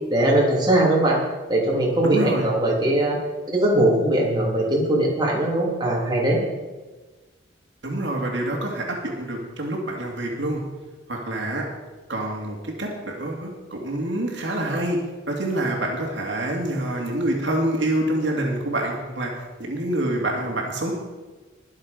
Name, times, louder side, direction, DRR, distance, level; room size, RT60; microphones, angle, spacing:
voice 1, 0.1-1.2 1.5-3.2 3.5-6.4, right 1 dB, 20° right, -4 dB, 3.1 m, -20 dB
voice 2, 2.0-2.4 7.8-10.6 11.1-11.7 12.1-15.0 15.3-19.3 19.6-20.9, right 1 dB, 70° right, -1 dB, 2.5 m, -26 dB
21.0 x 7.3 x 5.2 m, 1.2 s
head